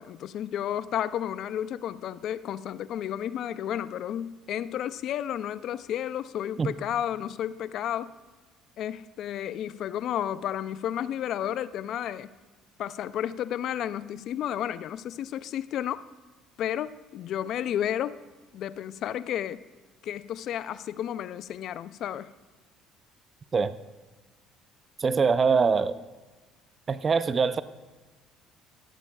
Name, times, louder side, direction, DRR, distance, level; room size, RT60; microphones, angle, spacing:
voice 1, 0.0-8.1 8.8-12.3 12.8-16.0 16.6-18.2 18.5-19.6 20.0-22.3, left 10 dB, 60° left, 16 dB, 0.3 m, -32 dB
voice 2, 25.0-26.0 26.9-27.6, right 5 dB, 35° right, 15 dB, 0.4 m, -23 dB
15.0 x 12.0 x 2.3 m, 1.2 s
hypercardioid pair, 65°, 0 cm